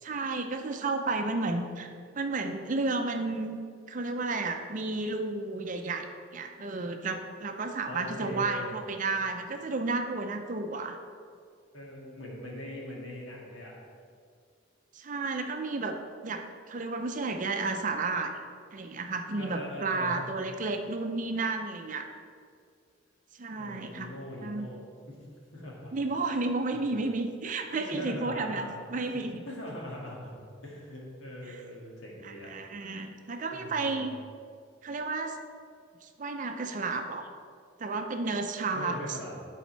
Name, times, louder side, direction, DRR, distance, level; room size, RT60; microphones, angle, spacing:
voice 1, 0.0-1.9 2.1-3.6 3.9-6.1 6.3-11.0 14.9-16.0 16.2-18.3 18.7-22.1 23.4-24.1 24.4-24.7 25.9-29.4 31.5-31.6 32.2-34.1 34.8-35.4 36.0-37.3 37.8-39.2, right 3 dB, 40° right, 5 dB, 0.5 m, -32 dB
voice 2, 7.9-8.7 11.7-13.8 19.4-20.2 23.6-25.3 25.5-25.9 27.7-29.2 29.5-30.3 30.6-32.5 33.5-34.2 38.7-39.5, equal, 75° left, -3 dB, 1.9 m, -41 dB
10.0 x 4.2 x 4.5 m, 2.2 s
head